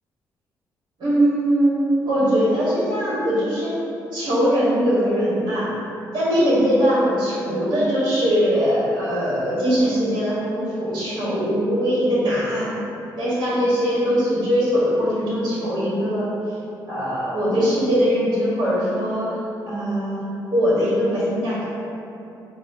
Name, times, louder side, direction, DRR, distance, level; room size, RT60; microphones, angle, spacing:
voice 1, 1.0-3.7 4.1-5.7 6.1-12.7 13.2-16.2 16.9-19.3 19.7-20.2 20.5-21.7, equal, 65° right, -9 dB, 1.3 m, -21 dB
4.1 x 2.2 x 2.6 m, 2.8 s
cardioid pair, 95°, 8 cm